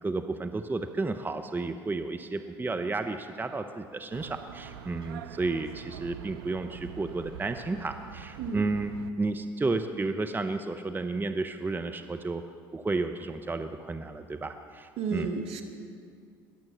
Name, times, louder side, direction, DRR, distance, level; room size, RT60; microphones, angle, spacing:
voice 1, 0.0-8.9 9.2-12.4 12.7-15.3, right 3 dB, 15° right, 7 dB, 0.8 m, -32 dB
sound 1, 4.1-9.1, right 10 dB, 80° right, 0.5 m, -44 dB
voice 2, 15.0-15.6, right 5 dB, 55° right, 8 dB, 1.6 m, -32 dB
21.0 x 7.8 x 7.3 m, 2.2 s
hypercardioid pair, 70°, 12 cm